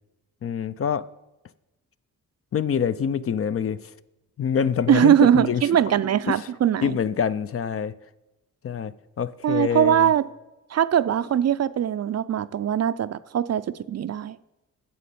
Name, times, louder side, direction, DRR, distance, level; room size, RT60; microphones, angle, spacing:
voice 1, 0.4-1.1 2.5-3.8 4.4-5.6 6.3-6.4 6.8-7.9 8.6-10.1, left 7 dB, 45° left, 0.4 m, -25 dB
voice 2, 4.9-7.0 9.4-10.3 10.7-14.4, right 10 dB, 50° right, 0.5 m, -21 dB
9.5 x 7.4 x 8.4 m
wide cardioid pair, 120°, 33 cm